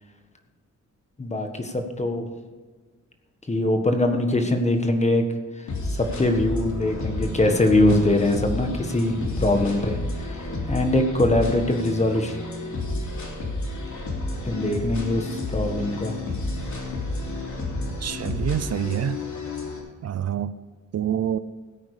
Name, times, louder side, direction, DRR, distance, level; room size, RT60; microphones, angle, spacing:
voice 1, 1.2-2.3 3.5-5.2 5.6-5.7 5.9-12.4 14.4-16.2, left 1 dB, 20° left, 1.5 m, -22 dB
sound 1, 5.7-19.8, left 2 dB, 70° left, 3.2 m, -31 dB
voice 2, 18.0-19.2 20.0-20.6 20.9-21.4, right 9 dB, 55° right, 0.5 m, -26 dB
16.0 x 9.4 x 4.9 m
wide cardioid pair, 145°, 30 cm